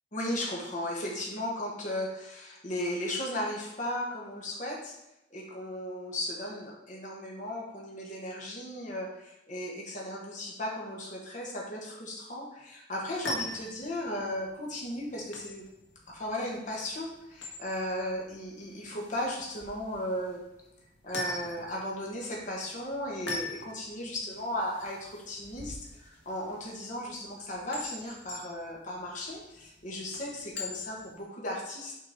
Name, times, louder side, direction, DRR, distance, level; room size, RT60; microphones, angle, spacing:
voice 1, 0.1-4.9 5.3-15.6 16.1-20.4 21.0-32.0, left 1 dB, 45° left, -2 dB, 1.5 m, -36 dB
sound 1, 13.0-31.2, left 2 dB, 85° left, 1.6 m, -43 dB
6.5 x 5.2 x 4.3 m, 0.90 s
head